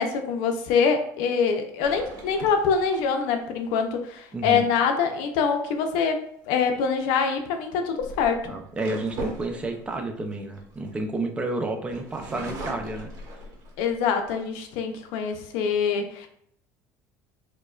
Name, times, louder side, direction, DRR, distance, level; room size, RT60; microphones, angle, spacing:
voice 1, 0.0-6.2 6.5-8.5 13.8-16.3, left 6 dB, 80° left, 6 dB, 0.5 m, -24 dB
sound 1, 1.8-3.4 6.4-6.7 7.6-11.4 11.9-14.0 14.5-14.6 15.0-15.6, right 1 dB, 55° right, 1.0 m, -39 dB
voice 2, 4.3-4.7 8.5-13.1, right 2 dB, 15° right, 4 dB, 0.4 m, -30 dB
4.6 x 2.1 x 2.3 m, 0.68 s
cardioid pair, 145°, 8 cm